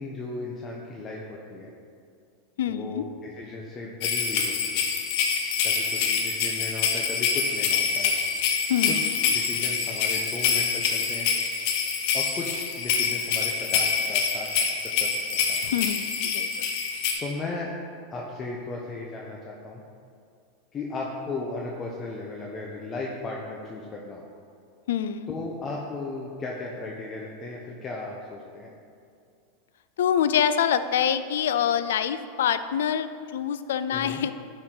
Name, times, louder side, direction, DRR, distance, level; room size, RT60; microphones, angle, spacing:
voice 1, 0.0-1.7 2.7-4.9 5.6-8.1 8.9-11.3 12.1-15.1 15.5-15.6 17.2-17.7 18.1-19.8 20.7-24.2 25.3-28.7 33.9-34.2, left 3 dB, 25° left, -2 dB, 0.8 m, -36 dB
voice 2, 2.6-3.0 8.7-9.1 15.6-16.7 24.9-25.3 30.0-34.3, left 9 dB, 80° left, 12 dB, 0.3 m, -26 dB
sound 1, 4.0-17.1, left 6 dB, 60° left, 1.0 m, -26 dB
10.0 x 4.4 x 3.9 m, 2.3 s
hypercardioid pair, 110°, 0 cm